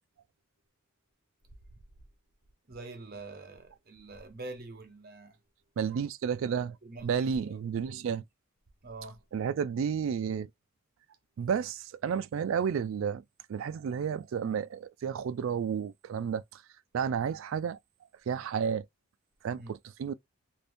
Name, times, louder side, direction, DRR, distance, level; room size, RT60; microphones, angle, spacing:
voice 1, 2.7-5.4 6.8-7.6 8.8-9.2 19.5-19.7, right 2 dB, 45° right, 0.8 m, -45 dB
voice 2, 5.8-6.8 7.0-8.2 9.3-10.5 11.4-13.2 13.5-16.6 16.9-17.8 18.3-18.8 19.4-20.1, right 7 dB, 65° right, 0.3 m, -31 dB
2.7 x 2.5 x 3.4 m
head